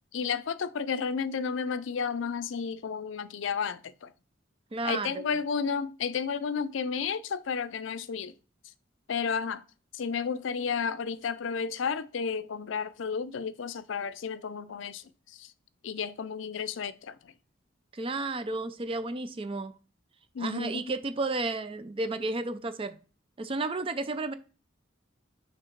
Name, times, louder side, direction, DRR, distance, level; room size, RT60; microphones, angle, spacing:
voice 1, 0.1-4.1 4.8-8.3 9.1-9.6 9.9-15.5 15.8-17.3 20.3-21.0, left 6 dB, 80° left, 0.5 m, -32 dB
voice 2, 4.7-5.2 17.9-19.7 20.4-23.0 23.4-24.3, right 2 dB, 30° right, 0.5 m, -32 dB
6.3 x 3.5 x 4.4 m
head